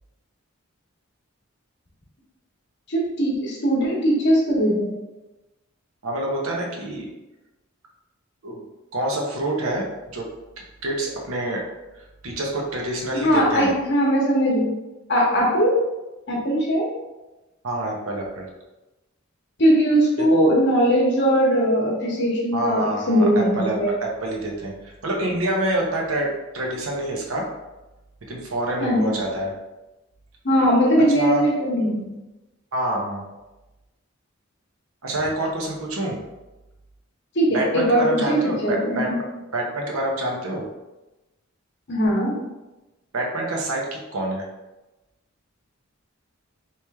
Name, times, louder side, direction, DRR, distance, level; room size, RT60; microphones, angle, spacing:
voice 1, 2.9-4.9 13.1-14.7 15.1-15.8 16.3-16.9 19.6-23.9 28.8-29.1 30.4-32.1 37.3-39.0 41.9-42.4, equal, 55° left, -2 dB, 0.9 m, -20 dB
voice 2, 6.0-7.1 8.4-8.6 8.9-10.3 10.8-11.6 12.2-13.7 17.6-18.5 20.2-20.3 22.5-27.5 28.3-29.5 31.1-31.4 32.7-33.2 35.0-36.2 37.5-39.1 39.5-40.6 43.1-44.4, right 1 dB, 75° right, -1 dB, 0.8 m, -27 dB
3.1 x 3.0 x 3.5 m, 1.0 s
head